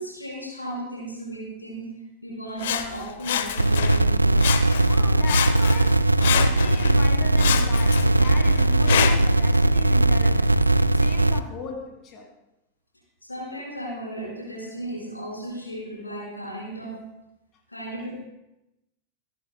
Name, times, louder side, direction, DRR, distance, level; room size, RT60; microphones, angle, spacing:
voice 1, 0.0-4.6 5.3-5.4 13.2-17.1 17.7-18.2, right 1 dB, 85° left, -3 dB, 4.6 m, -35 dB
Sawing, 2.6-4.1 4.4-5.0 5.2-7.0 7.4-9.4 10.0-10.1, left 9 dB, 60° left, 0.8 m, -27 dB
sound 1, 3.6-11.4, right 1 dB, 85° right, 0.4 m, -19 dB
voice 2, 4.9-10.5 10.8-12.3, left 4 dB, 35° left, 3 dB, 2.7 m, -38 dB
27.5 x 10.5 x 2.2 m, 0.91 s
figure-of-eight pair, 90°, 0 cm